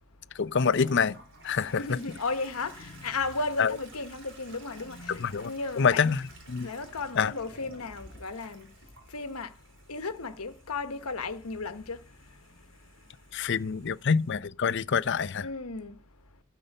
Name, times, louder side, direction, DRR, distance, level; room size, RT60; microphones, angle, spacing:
voice 1, 0.4-1.2 1.4-2.0 3.6-3.7 5.1-5.5 5.8-6.2 6.5-6.7 7.2-7.3 13.3-15.5, left 6 dB, 55° left, 0.6 m, -26 dB
Toilet flush, 0.7-14.3, right 1 dB, 60° right, 3.7 m, -53 dB
voice 2, 1.7-6.2 6.6-8.7 9.1-9.5 9.9-12.0 15.4-16.0, left 3 dB, 85° left, 1.2 m, -35 dB
12.5 x 5.6 x 6.7 m
head